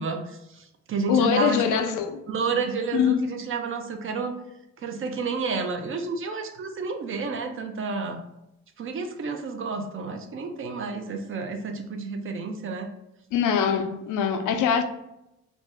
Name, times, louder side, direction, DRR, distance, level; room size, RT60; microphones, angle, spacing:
voice 1, 0.0-1.8 2.3-4.3 4.8-8.2 8.8-12.9, right 4 dB, 45° right, 0.5 m, -30 dB
voice 2, 1.1-2.2 2.9-3.3 13.3-14.8, left 7 dB, 80° left, 0.5 m, -23 dB
2.6 x 2.2 x 3.4 m
cardioid pair, 90°, 30 cm